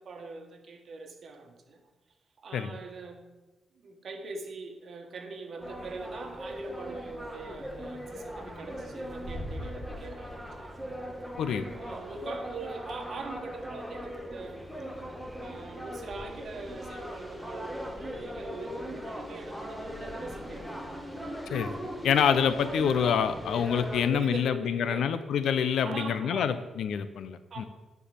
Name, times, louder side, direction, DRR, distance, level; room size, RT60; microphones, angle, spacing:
voice 1, 0.0-1.8 2.4-3.2 3.8-10.7 11.7-14.7 15.4-20.7 23.9-25.2 25.8-26.6 27.5-27.7, right 3 dB, 55° right, 4 dB, 1.6 m, -42 dB
sound 1, 5.6-24.1, equal, ahead, 1.4 m, -39 dB
voice 2, 22.0-27.7, left 8 dB, 80° left, 12 dB, 0.7 m, -27 dB
10.0 x 4.7 x 7.7 m, 1.2 s
cardioid pair, 115°, 0 cm